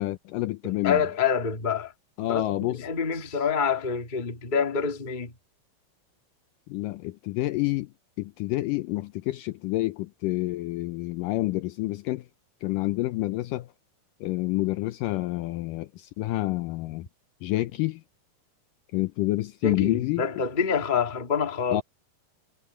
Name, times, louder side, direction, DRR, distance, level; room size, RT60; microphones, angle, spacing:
voice 1, 0.0-1.0 2.2-2.8 3.1-3.4 6.7-7.9 8.2-12.3 12.6-13.7 14.2-17.1 17.4-18.0 18.9-20.4 21.7-21.8, left 18 dB, 80° left, 2.0 m, -28 dB
voice 2, 0.8-1.9 2.3-5.3 19.6-21.8, left 6 dB, 35° left, 0.7 m, -27 dB
omnidirectional pair, 4.4 m